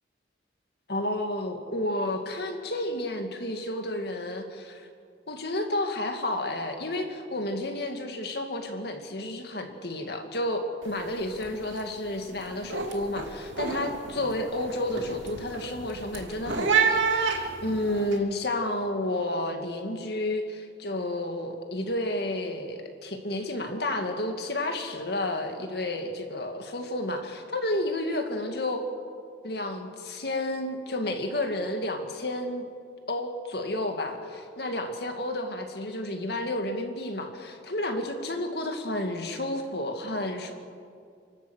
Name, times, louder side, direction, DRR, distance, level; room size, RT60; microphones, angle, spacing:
voice 1, 0.9-4.9 5.3-28.8 29.4-32.7 33.1-40.5, left 1 dB, 55° left, 5 dB, 2.3 m, -31 dB
sound 1, 10.8-11.1 11.4-11.8 12.2-18.1, right 5 dB, 85° right, 2.5 m, -29 dB
29.0 x 12.5 x 8.3 m, 2.3 s
head